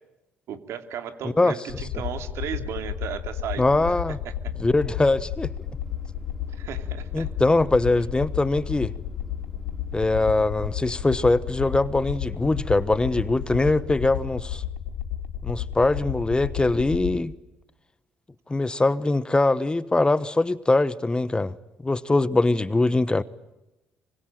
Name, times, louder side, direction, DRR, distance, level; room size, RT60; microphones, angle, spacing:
voice 1, 0.5-3.9 4.2-4.3 6.5-7.3, right 8 dB, 65° right, 2.8 m, -35 dB
voice 2, 1.2-1.5 3.6-4.2 4.6-5.5 7.1-8.9 9.9-14.6 15.4-17.3 18.5-21.5 21.8-23.2, left 2 dB, 20° left, 1.2 m, -22 dB
sound 1, 1.7-17.2, left 10 dB, 75° left, 5.1 m, -33 dB
sound 2, 5.4-14.2, equal, 5° right, 6.2 m, -49 dB
25.5 x 24.5 x 9.1 m
hypercardioid pair, 55°, 5 cm